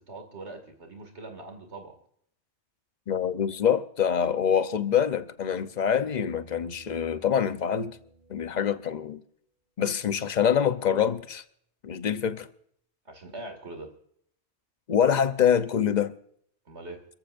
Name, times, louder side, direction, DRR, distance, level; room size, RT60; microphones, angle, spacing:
voice 1, 0.0-1.9 8.5-8.8 13.1-13.9 16.7-17.0, right 2 dB, 70° right, 2.6 m, -42 dB
voice 2, 3.1-8.0 8.3-9.2 9.8-11.4 11.8-12.5 14.9-16.1, left 8 dB, 40° left, 0.9 m, -25 dB
sound 1, 4.9-9.0 11.4-11.5, right 3 dB, 50° right, 4.2 m, -56 dB
28.0 x 14.5 x 2.6 m
omnidirectional pair, 1.2 m